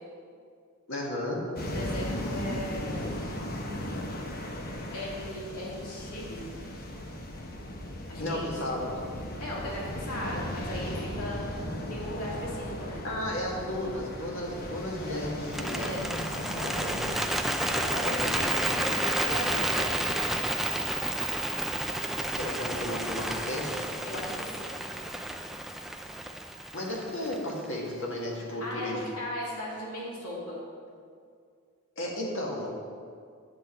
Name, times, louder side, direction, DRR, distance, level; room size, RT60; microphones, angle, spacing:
voice 1, 0.9-1.4 8.2-8.9 13.0-15.8 18.0-18.3 22.4-23.9 26.7-29.0 32.0-32.7, left 1 dB, 60° left, -2 dB, 1.9 m, -33 dB
voice 2, 1.6-3.2 4.9-6.4 8.1-8.5 9.4-11.4 11.9-13.0 15.7-16.1 16.5-17.2 17.5-19.9 24.0-24.8 28.6-30.6, left 1 dB, 90° left, -5 dB, 2.3 m, -37 dB
sound 1, 1.6-17.3, left 1 dB, 45° left, 0.9 m, -37 dB
Bird, 15.4-27.6, right 1 dB, ahead, 0.4 m, -31 dB
8.8 x 8.0 x 4.4 m, 2.2 s
head